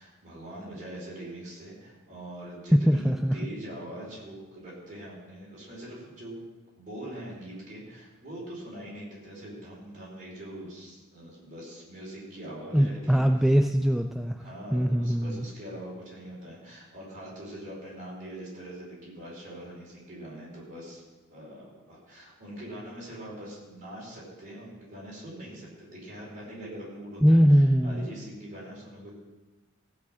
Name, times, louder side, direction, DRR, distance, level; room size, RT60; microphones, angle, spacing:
voice 1, 0.0-6.4 6.7-13.3 14.4-21.0 21.3-29.1, right 1 dB, 40° right, -5 dB, 4.8 m, -43 dB
voice 2, 2.7-3.4 12.7-14.4 14.7-15.4 27.2-28.1, equal, ahead, 5 dB, 0.3 m, -22 dB
15.5 x 5.7 x 7.6 m, 1.2 s
head